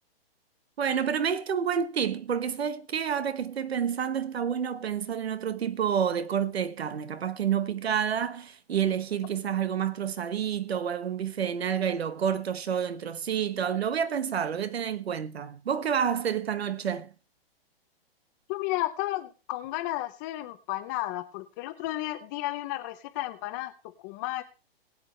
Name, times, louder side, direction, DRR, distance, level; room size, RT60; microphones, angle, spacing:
voice 1, 0.8-17.1, right 8 dB, 90° right, 1.2 m, -29 dB
voice 2, 18.5-23.7 24.0-24.4, left 16 dB, 20° left, 0.6 m, -33 dB
21.0 x 8.2 x 3.2 m
hypercardioid pair, 160°, 30 cm